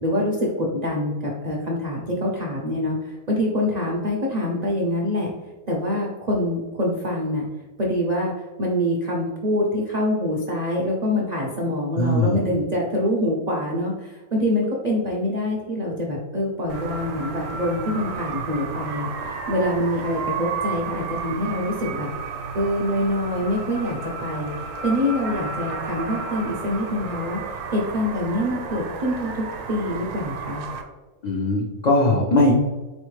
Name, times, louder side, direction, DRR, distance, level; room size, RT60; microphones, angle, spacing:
voice 1, 0.0-5.3 5.7-7.4 7.8-8.3 8.6-22.1 22.5-27.4 27.7-30.7, left 1 dB, 60° right, -3 dB, 0.4 m, -25 dB
voice 2, 12.0-12.4 31.2-32.5, left 2 dB, 65° left, -3 dB, 0.4 m, -19 dB
sound 1, 16.7-30.8, right 5 dB, 85° right, 1.1 m, -32 dB
4.3 x 3.1 x 3.1 m, 1.2 s
omnidirectional pair, 1.5 m